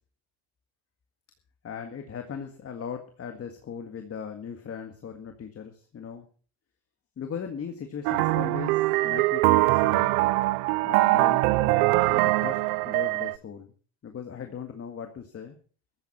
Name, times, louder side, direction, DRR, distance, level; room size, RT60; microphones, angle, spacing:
voice 1, 1.6-6.3 7.2-10.2 10.8-13.7 14.0-15.6, left 7 dB, 30° left, 5 dB, 1.9 m, -38 dB
sound 1, 8.1-13.4, right 20 dB, 85° right, 0.7 m, -23 dB
15.5 x 14.0 x 4.3 m, 0.40 s
supercardioid pair, 105°, 44 cm